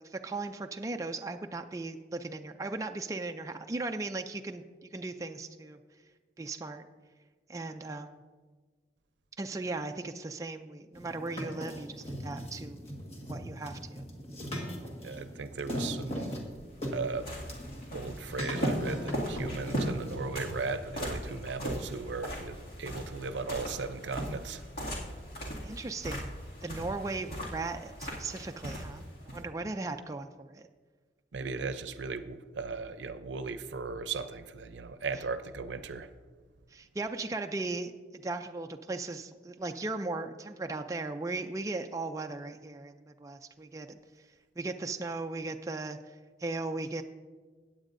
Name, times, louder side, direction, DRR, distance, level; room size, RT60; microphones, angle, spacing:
voice 1, 0.0-5.8 6.4-6.9 7.5-8.2 9.4-12.8 13.3-14.1 25.6-26.3 26.6-30.6 36.7-44.0 44.6-47.0, right 3 dB, 20° right, 5 dB, 0.3 m, -37 dB
sound 1, 10.9-20.2, equal, 35° left, 1.6 m, -39 dB
voice 2, 15.0-16.4 16.9-17.3 17.9-24.6 29.6-29.7 31.3-36.1, right 4 dB, 85° right, 11 dB, 0.6 m, -37 dB
sound 2, 16.5-29.5, equal, 55° left, 2.2 m, -38 dB
16.5 x 8.8 x 2.6 m, 1.4 s
head